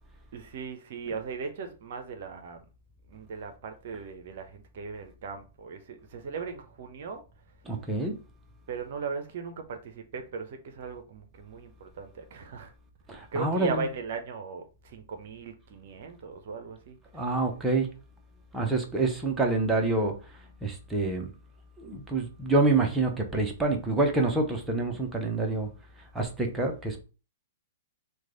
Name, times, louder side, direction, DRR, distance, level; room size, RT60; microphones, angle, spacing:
voice 1, 0.3-2.6 3.1-7.2 8.7-12.7 13.3-17.0, right 5 dB, 60° right, 0.6 m, -38 dB
voice 2, 7.7-8.1 13.1-13.8 17.1-17.9 18.5-20.1 20.6-21.3 21.8-25.7 26.1-27.0, right 3 dB, 10° right, 0.7 m, -27 dB
3.1 x 2.2 x 3.7 m
hypercardioid pair, 115°, 0 cm